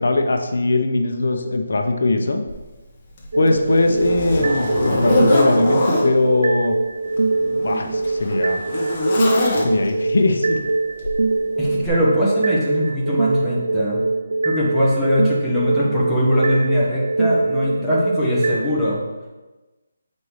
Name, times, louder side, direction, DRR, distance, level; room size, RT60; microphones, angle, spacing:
voice 1, 0.0-2.4 3.4-6.7 7.6-8.6 9.6-10.6, left 2 dB, 70° left, 5 dB, 0.8 m, -20 dB
Zipper (clothing), 2.5-2.6 3.2-6.1 7.1-10.0 11.0-11.2 11.8-11.9, left 2 dB, 30° left, 1.3 m, -23 dB
sound 1, 3.3-18.7, right 3 dB, 85° right, 0.6 m, -23 dB
voice 2, 11.6-14.0 14.4-19.0, equal, ahead, -10 dB, 1.4 m, -21 dB
8.4 x 5.2 x 3.2 m, 1.2 s
hypercardioid pair, 170°, 0 cm